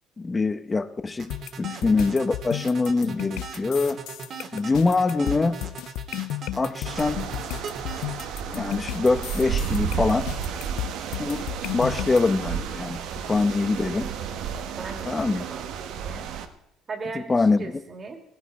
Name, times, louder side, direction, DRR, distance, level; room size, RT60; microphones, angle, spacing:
voice 1, 0.2-4.0 4.5-5.6 6.6-7.3 8.5-10.3 11.2-11.5 11.7-13.0 13.3-14.1 15.0-15.5 17.1-17.7, left 3 dB, 25° left, 1.0 m, -24 dB
sound 1, 1.2-8.3, right 5 dB, 55° right, 2.1 m, -39 dB
sound 2, 1.3-12.2, left 16 dB, 80° left, 0.4 m, -34 dB
sound 3, 6.8-16.5, right 7 dB, 75° right, 1.2 m, -32 dB
voice 2, 14.8-16.3 16.9-18.2, right 4 dB, 35° right, 2.5 m, -38 dB
16.0 x 14.0 x 4.3 m
supercardioid pair, 90°, 0 cm